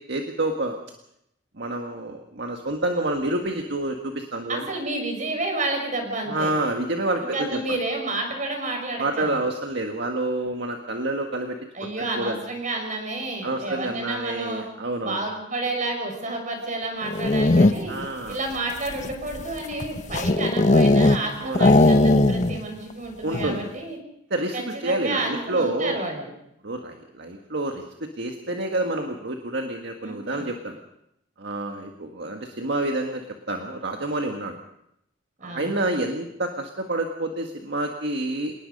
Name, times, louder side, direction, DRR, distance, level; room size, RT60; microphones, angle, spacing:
voice 1, 0.1-0.8 1.5-4.7 6.3-7.8 9.0-11.9 12.1-12.4 13.4-15.2 17.9-18.4 21.4-21.8 23.2-23.7 24.3-26.0 26.6-30.8 31.4-34.6 35.4-38.5, right 2 dB, 60° right, 4 dB, 1.7 m, -28 dB
voice 2, 4.5-6.5 7.2-9.4 11.7-14.6 15.0-17.9 18.3-24.0 24.5-26.3 30.0-30.5 35.4-35.7, right 2 dB, 40° right, 3 dB, 5.9 m, -30 dB
sound 1, 17.0-18.0 18.7-21.3 21.5-22.6 22.9-23.0 23.3-23.7, left 2 dB, 40° left, 0.9 m, -18 dB
27.0 x 19.5 x 5.4 m, 0.79 s
head